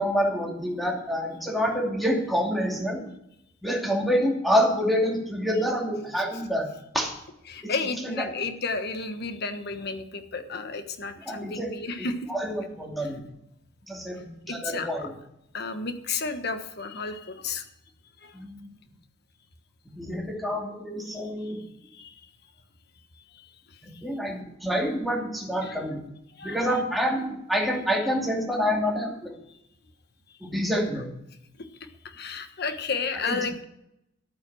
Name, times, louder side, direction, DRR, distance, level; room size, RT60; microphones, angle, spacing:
voice 1, 0.0-3.0 3.6-6.7 6.9-7.1 7.6-7.7 8.0-8.3 11.3-11.7 12.3-13.2 13.9-15.1 18.3-18.6 20.0-21.6 23.8-26.0 26.4-29.3 30.4-31.1 33.2-33.5, equal, ahead, -1 dB, 2.6 m, -27 dB
voice 2, 7.5-12.3 14.5-15.1 15.5-17.6 18.2-18.4 21.1-21.5 21.8-22.2 23.3-24.0 25.6-25.8 26.4-26.7 32.0-33.6, left 4 dB, 60° left, 8 dB, 1.3 m, -33 dB
12.0 x 9.3 x 6.3 m, 0.79 s
head